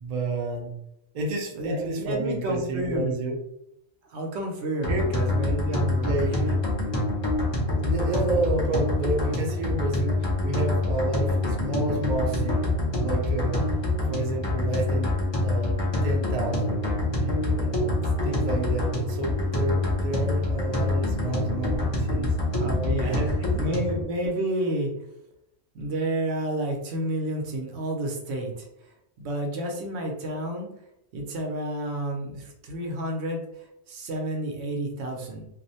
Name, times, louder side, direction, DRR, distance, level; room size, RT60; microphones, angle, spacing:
voice 1, 0.0-0.7 1.1-3.4 4.9-5.0 6.0-6.3 7.8-13.6 14.1-15.1 15.4-16.8 17.2-22.3 23.0-23.5, right 2 dB, 50° right, 0 dB, 0.5 m, -30 dB
voice 2, 1.6-3.2 4.1-6.6 22.5-23.2 23.6-24.9 25.7-28.9 29.2-30.7 31.1-35.5, right 1 dB, 85° right, 1 dB, 0.9 m, -30 dB
sound 1, 4.8-24.0, left 2 dB, 35° left, 0.4 m, -26 dB
2.5 x 2.0 x 2.6 m, 0.80 s
omnidirectional pair, 1.1 m